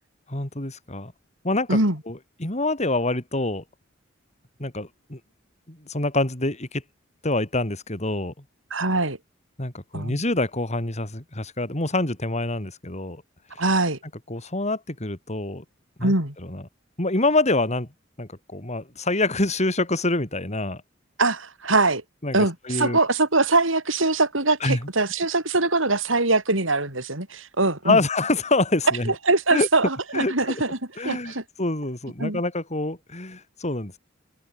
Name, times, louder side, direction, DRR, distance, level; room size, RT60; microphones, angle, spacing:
voice 1, 0.3-1.1 1.4-1.8 2.1-3.6 4.6-5.2 5.7-6.8 7.2-8.3 9.6-13.2 14.3-15.6 16.0-16.7 17.0-17.9 18.2-20.8 22.2-23.0 24.6-24.9 27.9-29.1 29.5-29.7 30.1-30.6 31.0-34.0, left 2 dB, 35° left, 4.0 m, -26 dB
voice 2, 8.7-9.2 9.9-10.2 13.6-14.0 16.0-16.3 21.2-22.0 22.3-28.0 29.3-30.8 31.0-31.4 32.2-32.4, right 2 dB, 80° right, 6.9 m, -22 dB
open air
head